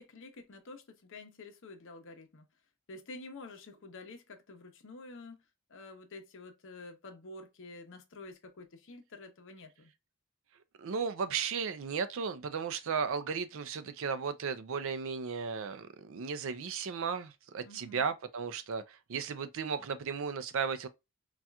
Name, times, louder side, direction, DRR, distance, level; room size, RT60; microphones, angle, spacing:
voice 1, 0.0-2.4 2.9-5.4 5.7-9.9 17.6-18.1, left 2 dB, 60° left, 0.7 m, -49 dB
voice 2, 10.8-20.9, right 6 dB, 65° right, 0.4 m, -35 dB
4.2 x 2.4 x 2.3 m
head